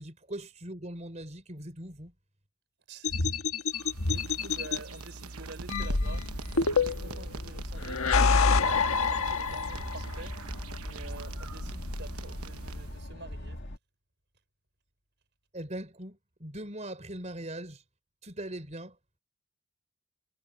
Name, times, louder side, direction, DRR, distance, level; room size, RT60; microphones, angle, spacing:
voice 1, 0.0-2.1 15.5-17.8 18.2-19.0, right 1 dB, 30° right, 4.3 m, -40 dB
voice 2, 2.9-13.6, right 2 dB, 50° right, 5.9 m, -48 dB
sound 1, 3.0-4.8 5.7-7.2 7.8-10.0, left 4 dB, 75° left, 1.3 m, -26 dB
sound 2, 3.7-13.1, right 3 dB, 85° right, 1.0 m, -44 dB
sound 3, 6.1-13.8, left 1 dB, 50° left, 2.1 m, -40 dB
head